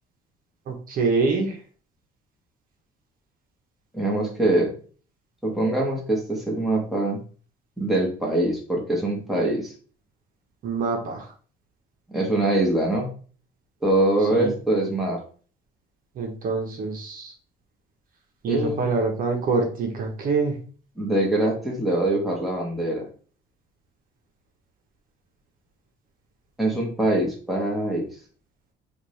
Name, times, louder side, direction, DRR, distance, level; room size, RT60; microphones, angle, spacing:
voice 1, 0.7-1.6 10.6-11.3 14.3-14.5 16.2-17.3 18.4-20.6, right 4 dB, 55° right, 1 dB, 1.1 m, -25 dB
voice 2, 3.9-4.7 5.4-7.2 7.8-9.7 12.1-13.1 13.8-15.2 18.5-18.9 21.0-23.0 26.6-28.1, right 1 dB, ahead, -3 dB, 1.4 m, -23 dB
5.0 x 2.6 x 3.2 m, 0.42 s
cardioid pair, 110°, 17 cm